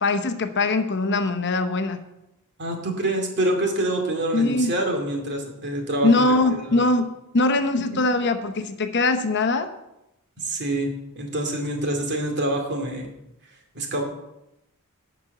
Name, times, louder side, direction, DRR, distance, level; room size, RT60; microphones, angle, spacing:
voice 1, 0.0-2.0 4.3-4.7 6.0-9.7, left 2 dB, 50° left, 8 dB, 0.9 m, -22 dB
voice 2, 2.6-6.1 6.6-6.8 10.4-13.1 13.7-14.0, right 1 dB, 50° right, 2 dB, 2.4 m, -26 dB
11.5 x 5.3 x 8.0 m, 0.88 s
head